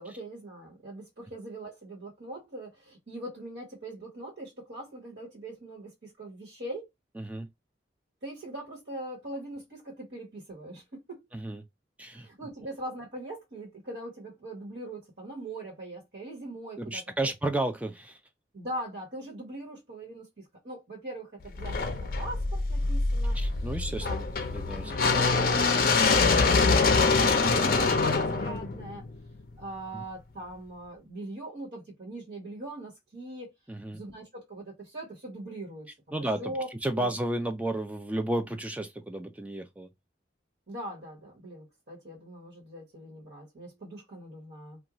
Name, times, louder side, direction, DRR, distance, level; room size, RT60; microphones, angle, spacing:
voice 1, 0.0-6.9 8.2-11.2 12.1-17.3 18.5-23.4 24.0-24.4 24.8-25.1 25.3-25.6 25.9-29.0 29.6-33.5 33.9-36.7 36.9-37.1 40.7-44.8, right 1 dB, 70° right, 1.2 m, -41 dB
voice 2, 7.2-7.5 11.3-11.7 12.0-12.3 16.8-18.2 23.3-24.2 24.5-25.6 29.9-30.0 33.7-34.0 36.1-36.5 36.8-39.9, right 1 dB, 10° right, 0.3 m, -32 dB
sound 1, 21.6-29.6, left 4 dB, 55° left, 0.5 m, -25 dB
2.5 x 2.3 x 2.9 m
head